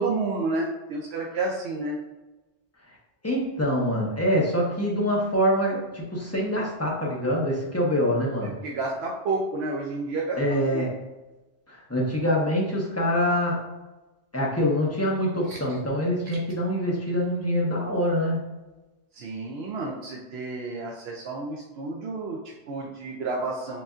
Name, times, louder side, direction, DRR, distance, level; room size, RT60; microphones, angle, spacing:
voice 1, 0.0-2.0 8.6-10.8 15.5-15.6 19.1-23.8, right 3 dB, 75° right, -2 dB, 0.9 m, -30 dB
voice 2, 3.2-8.5 10.4-10.9 11.7-13.6 14.3-18.4, equal, 15° left, -3 dB, 0.9 m, -25 dB
6.8 x 2.6 x 2.4 m, 1.1 s
omnidirectional pair, 1.1 m